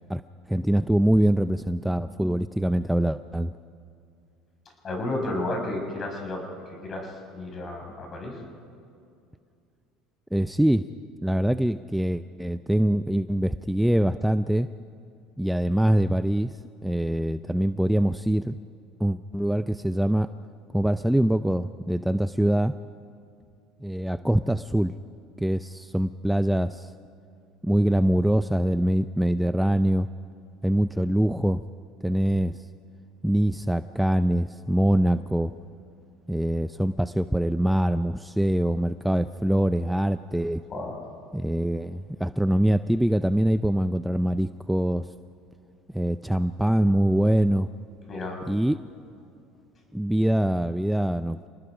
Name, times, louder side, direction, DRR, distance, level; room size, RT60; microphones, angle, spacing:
voice 1, 0.5-3.5 10.3-10.9 11.2-14.7 15.4-18.6 19.0-20.3 20.7-22.7 23.8-24.9 25.4-26.9 27.6-30.1 30.6-31.6 32.0-32.6 33.2-35.5 36.3-40.6 41.3-45.1 45.9-47.7 48.5-48.8 49.9-51.5, right 1 dB, 5° right, 12 dB, 0.5 m, -24 dB
voice 2, 4.8-6.4 6.8-8.4 40.7-41.0 48.1-48.4, left 2 dB, 35° left, 2 dB, 6.1 m, -32 dB
27.5 x 19.5 x 5.0 m, 2.5 s
hypercardioid pair, 85°, 0 cm